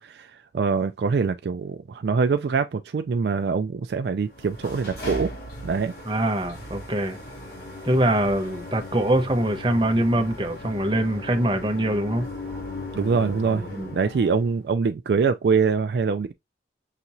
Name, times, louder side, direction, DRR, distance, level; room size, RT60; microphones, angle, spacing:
voice 1, 0.0-5.3 5.6-5.9 12.9-13.7 13.9-16.3, right 5 dB, 70° right, 0.3 m, -24 dB
sound 1, 4.3-14.6, left 2 dB, 60° left, 2.3 m, -37 dB
voice 2, 6.0-7.2 7.8-12.2 13.5-13.9, right 1 dB, 30° right, 0.7 m, -23 dB
5.8 x 2.9 x 2.6 m
head